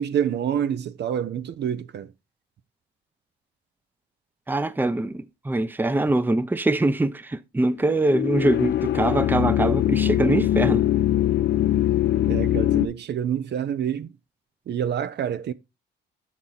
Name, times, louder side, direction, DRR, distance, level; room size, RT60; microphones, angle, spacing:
voice 1, 0.0-2.1 12.3-14.1 14.7-15.5, right 9 dB, 60° right, 0.6 m, -27 dB
voice 2, 4.5-10.8, right 2 dB, 10° right, 0.6 m, -23 dB
sound 1, 7.8-12.9, left 12 dB, 60° left, 0.6 m, -22 dB
7.0 x 6.1 x 3.8 m
cardioid pair, 90°, 20 cm